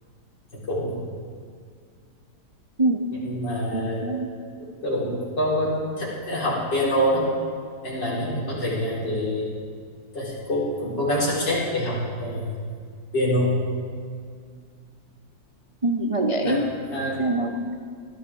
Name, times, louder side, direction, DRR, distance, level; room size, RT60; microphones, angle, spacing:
voice 1, 0.5-1.0 3.1-4.2 4.6-7.3 7.8-9.5 10.1-12.5 13.1-13.6 16.4-17.2, equal, 70° left, -6 dB, 4.6 m, -26 dB
voice 2, 3.7-4.3 15.8-16.6 17.2-17.8, right 2 dB, 55° right, 2 dB, 0.3 m, -24 dB
21.0 x 14.0 x 3.7 m, 2.1 s
omnidirectional pair, 2.0 m